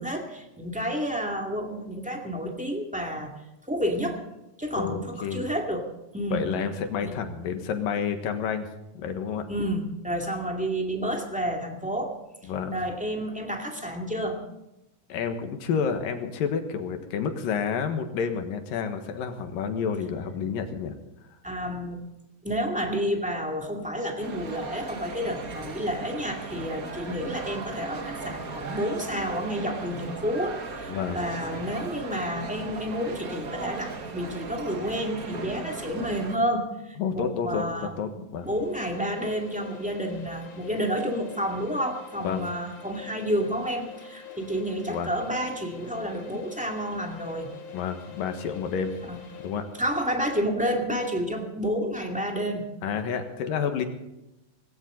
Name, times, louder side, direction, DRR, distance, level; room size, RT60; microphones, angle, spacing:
voice 1, 0.0-3.3 3.7-4.2 4.6-6.5 7.0-7.1 9.5-12.2 12.4-14.4 21.4-22.0 22.4-47.5 49.0-49.2 49.8-52.6, equal, 5° right, 1 dB, 1.7 m, -30 dB
voice 2, 4.8-5.4 6.3-8.7 8.9-9.5 12.5-12.8 15.1-20.9 30.9-31.2 37.0-38.5 42.2-42.4 44.9-45.1 47.7-48.9 49.4-49.7 52.8-53.9, left 6 dB, 75° left, 7 dB, 3.2 m, -29 dB
sound 1, 24.2-36.4, right 4 dB, 55° right, 1.0 m, -37 dB
sound 2, 38.4-50.0, left 6 dB, 60° left, 3.4 m, -45 dB
19.0 x 17.0 x 4.0 m, 0.93 s
omnidirectional pair, 4.0 m